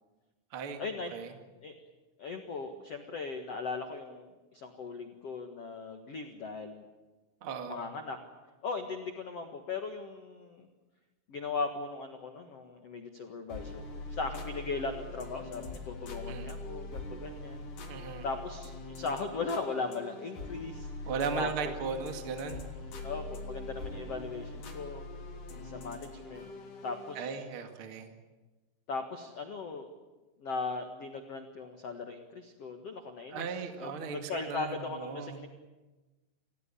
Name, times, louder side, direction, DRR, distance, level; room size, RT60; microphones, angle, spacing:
voice 1, 0.8-1.1 1.6-1.7 2.2-6.8 7.7-8.2 8.6-10.7 11.3-17.7 18.2-20.9 21.3-21.7 23.0-25.0 25.5-26.5 26.8-27.4 28.9-29.9 30.4-33.5 33.8-35.5, left 4 dB, 85° left, 5 dB, 1.3 m, -38 dB
voice 2, 7.4-7.8 16.3-16.6 17.9-18.2 21.1-22.7 27.1-28.1 33.3-34.2 34.5-35.4, right 6 dB, 45° right, 6 dB, 1.7 m, -37 dB
sound 1, 13.5-27.3, left 2 dB, 45° left, 4.4 m, -43 dB
28.0 x 16.5 x 10.0 m, 1.2 s
omnidirectional pair, 5.6 m